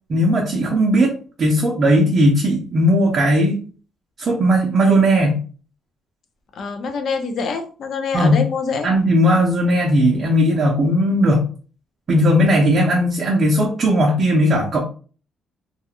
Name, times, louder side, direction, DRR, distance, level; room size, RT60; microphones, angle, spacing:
voice 1, 0.1-1.1 1.4-3.6 4.2-5.4 8.1-8.4 8.8-11.4 12.1-14.8, equal, 35° right, -1 dB, 0.5 m, -17 dB
voice 2, 6.6-8.9, left 5 dB, 50° left, 5 dB, 0.5 m, -25 dB
2.3 x 2.0 x 2.9 m, 0.39 s
cardioid pair, 155°, 0 cm